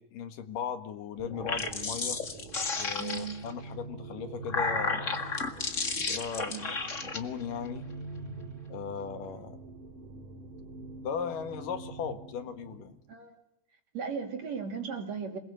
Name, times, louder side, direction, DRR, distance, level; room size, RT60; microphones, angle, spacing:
voice 1, 0.0-2.2 2.8-5.4 6.1-6.8 7.0-7.9 8.7-9.6 11.0-13.0, left 7 dB, 75° left, 9 dB, 3.2 m, -37 dB
sound 1, 1.2-13.1, right 3 dB, 75° right, 3.9 m, -45 dB
sound 2, 1.3-3.5 4.2-7.2, left 4 dB, 30° left, 1.5 m, -33 dB
voice 2, 3.0-3.4 6.5-6.6 13.1-13.4 13.9-15.4, right 6 dB, 50° right, 3 dB, 4.2 m, -36 dB
27.0 x 21.0 x 7.9 m, 0.74 s
omnidirectional pair, 3.9 m